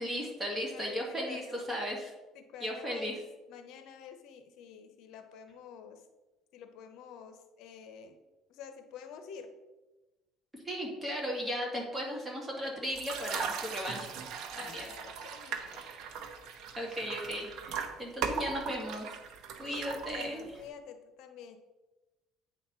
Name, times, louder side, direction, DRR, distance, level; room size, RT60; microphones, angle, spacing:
voice 1, 0.0-2.1 2.6-3.1 10.6-14.1 14.6-14.9 16.8-19.1 19.6-20.5, equal, 15° right, -2 dB, 2.1 m, -36 dB
voice 2, 0.7-1.7 2.3-3.2 3.5-6.0 6.5-8.2 8.5-9.5 14.5-15.9 19.5-21.6, left 7 dB, 70° left, 7 dB, 0.9 m, -49 dB
sound 1, 12.9-20.7, right 6 dB, 65° right, 0.9 m, -39 dB
8.5 x 4.3 x 5.6 m, 1.1 s
cardioid pair, 145°, 0 cm